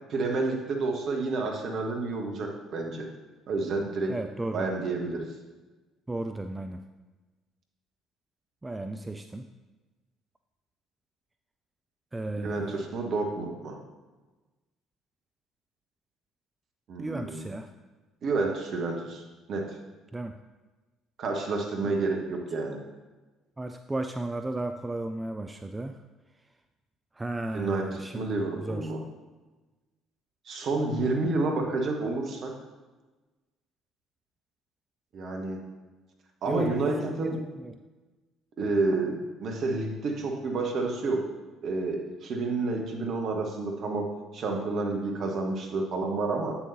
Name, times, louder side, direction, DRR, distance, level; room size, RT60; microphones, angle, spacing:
voice 1, 0.1-3.1 3.5-4.1 4.5-5.3 12.4-13.8 16.9-17.5 18.2-19.2 19.5-19.8 21.2-22.8 27.5-29.0 30.5-32.5 35.1-35.6 36.4-37.4 38.6-41.2 41.6-46.6, right 3 dB, 50° right, 2 dB, 1.1 m, -29 dB
voice 2, 4.1-4.7 6.1-6.8 8.6-9.5 12.1-12.9 17.0-17.7 20.1-20.4 21.8-21.9 23.6-26.0 27.2-28.9 36.5-36.7 37.0-37.8, right 2 dB, 15° right, 7 dB, 0.3 m, -34 dB
8.3 x 7.1 x 2.7 m, 1.2 s
figure-of-eight pair, 50°, 0 cm